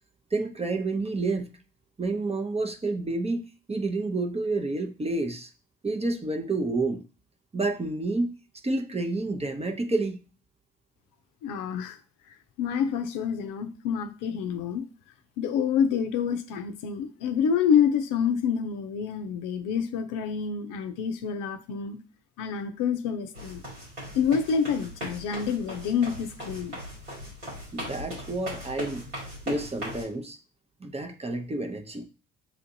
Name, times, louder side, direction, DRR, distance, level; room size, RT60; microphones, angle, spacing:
voice 1, 0.3-1.5 2.0-3.4 3.7-5.5 5.8-7.0 7.5-8.3 8.6-10.2 27.7-29.0 29.5-30.4 30.8-32.1, right 2 dB, 15° right, 0.7 m, -29 dB
voice 2, 11.4-12.0 12.6-14.8 15.4-22.0 22.4-23.6 24.1-26.8, left 7 dB, 60° left, 0.6 m, -27 dB
sound 1, 23.3-30.0, equal, 90° right, 2.1 m, -39 dB
7.0 x 2.5 x 2.7 m
figure-of-eight pair, 45°, 36 cm